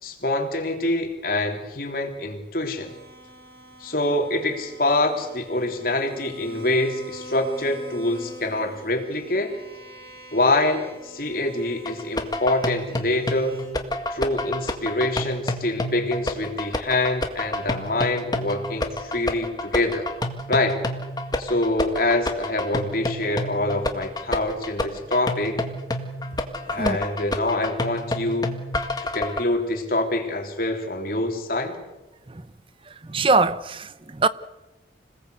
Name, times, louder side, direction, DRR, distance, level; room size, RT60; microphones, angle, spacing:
voice 1, 0.0-2.9 3.8-9.6 10.3-13.6 14.1-20.1 20.5-20.8 21.4-25.6 26.7-28.5 29.1-31.8, left 2 dB, 50° left, 3.5 m, -25 dB
sound 1, 2.8-13.7, equal, 55° right, 6.0 m, -44 dB
sound 2, 11.9-29.4, left 1 dB, 20° left, 1.8 m, -29 dB
voice 2, 33.0-34.3, right 3 dB, 30° right, 0.7 m, -22 dB
27.0 x 19.0 x 8.2 m
head